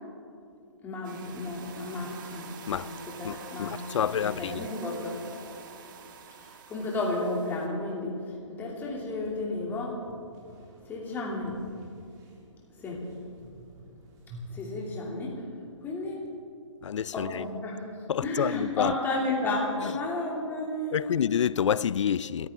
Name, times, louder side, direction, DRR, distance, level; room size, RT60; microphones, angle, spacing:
voice 1, 0.8-5.2 6.4-10.0 10.8-11.6 12.7-13.1 14.5-15.5 15.8-16.2 17.1-17.9 18.2-21.2, left 2 dB, 10° left, 2.7 m, -33 dB
sound 1, 1.0-7.7, right 6 dB, 40° right, 1.4 m, -46 dB
voice 2, 3.2-4.7 16.8-17.5 18.1-18.9 19.8-19.9 20.9-22.5, left 8 dB, 65° left, 0.4 m, -28 dB
sound 2, 6.7-16.3, equal, 20° right, 2.5 m, -50 dB
27.5 x 14.0 x 3.7 m
hypercardioid pair, 150°, 16 cm